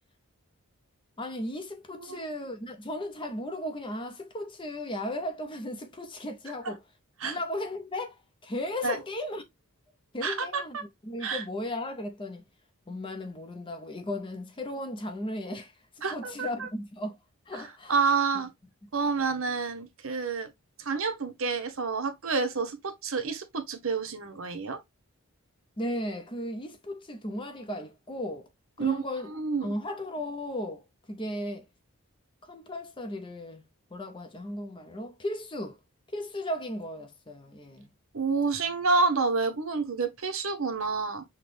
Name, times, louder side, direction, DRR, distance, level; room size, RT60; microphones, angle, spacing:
voice 1, 1.2-6.8 7.2-9.4 10.1-12.4 12.9-15.8 16.1-17.2 17.5-17.9 18.3-18.4 19.2-19.4 25.8-28.5 28.8-29.3 29.6-31.7 32.4-33.6 33.9-35.8 36.1-37.9, left 1 dB, 20° left, 0.6 m, -36 dB
voice 2, 10.2-10.8 11.2-11.4 16.0-16.7 17.5-17.6 17.9-18.5 18.9-20.5 20.8-24.8 28.8-29.0 29.3-29.7 38.1-41.2, right 4 dB, 65° right, 0.9 m, -29 dB
5.9 x 2.2 x 3.2 m
head